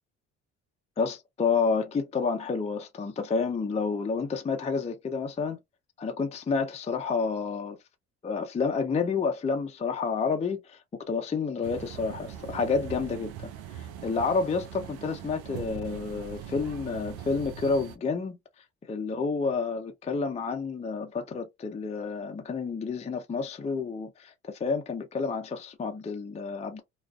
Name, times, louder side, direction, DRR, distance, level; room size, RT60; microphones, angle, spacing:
voice 1, 1.0-5.6 6.0-7.8 8.2-26.8, left 4 dB, 20° left, 0.5 m, -30 dB
sound 1, 11.6-18.0, right 9 dB, 75° right, 0.6 m, -41 dB
2.4 x 2.3 x 2.3 m
supercardioid pair, 65°, 37 cm